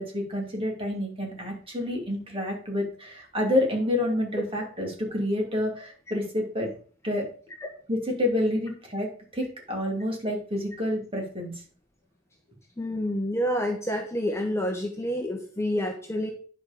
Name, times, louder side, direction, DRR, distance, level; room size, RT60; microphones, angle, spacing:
voice 1, 0.0-6.7 7.0-7.3 7.9-11.5, left 1 dB, 30° right, 0 dB, 2.8 m, -28 dB
voice 2, 12.8-16.3, equal, 15° left, 1 dB, 1.2 m, -28 dB
10.0 x 4.9 x 5.2 m, 0.43 s
head